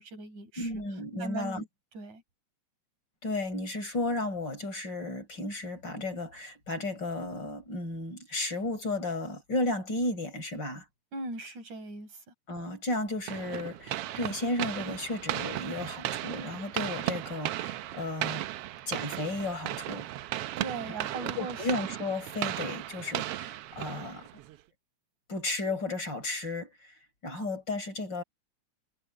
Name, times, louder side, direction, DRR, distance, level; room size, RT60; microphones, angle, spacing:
voice 1, 0.0-0.7 1.2-1.7 1.9-2.2 11.1-12.2 20.6-21.7, right 3 dB, 75° right, 7.0 m, -39 dB
voice 2, 0.6-1.6 3.2-10.8 12.5-18.4 18.9-20.1 20.9-24.3 25.3-26.9 27.2-28.2, left 2 dB, 35° left, 5.9 m, -34 dB
sound 1, 13.3-24.6, right 14 dB, 90° right, 1.3 m, -36 dB
omnidirectional pair, 3.5 m